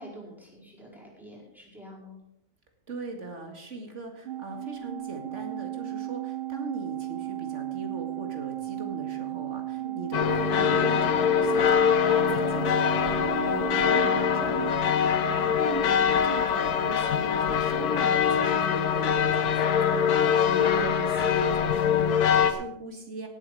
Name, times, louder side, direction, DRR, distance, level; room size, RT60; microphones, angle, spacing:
voice 1, 0.0-2.2 9.8-10.0 15.7-16.1, equal, ahead, -3 dB, 4.7 m, -47 dB
voice 2, 2.9-23.3, right 2 dB, 50° right, 3 dB, 2.5 m, -40 dB
Organ, 4.3-15.5, right 14 dB, 75° right, 0.5 m, -35 dB
sound 1, 10.1-22.5, left 7 dB, 90° left, 1.4 m, -23 dB
18.0 x 8.1 x 4.9 m, 0.81 s
omnidirectional pair, 1.6 m